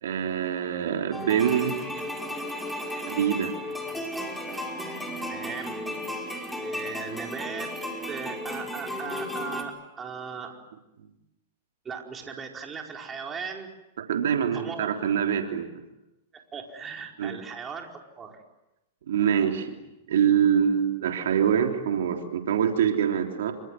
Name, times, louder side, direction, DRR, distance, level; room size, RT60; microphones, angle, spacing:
voice 1, 0.0-1.7 3.1-3.5 14.1-15.7 17.2-17.3 19.1-19.8 20.1-23.5, right 8 dB, 75° right, 3 dB, 3.4 m, -24 dB
sound 1, 1.1-9.6, left 1 dB, ahead, 5.3 m, -34 dB
voice 2, 5.2-5.8 6.6-7.8 8.1-10.6 11.8-13.7 14.5-14.9 16.3-18.4, right 5 dB, 20° right, 2 dB, 4.7 m, -38 dB
27.5 x 25.5 x 7.7 m, 0.95 s
hypercardioid pair, 120°, 0 cm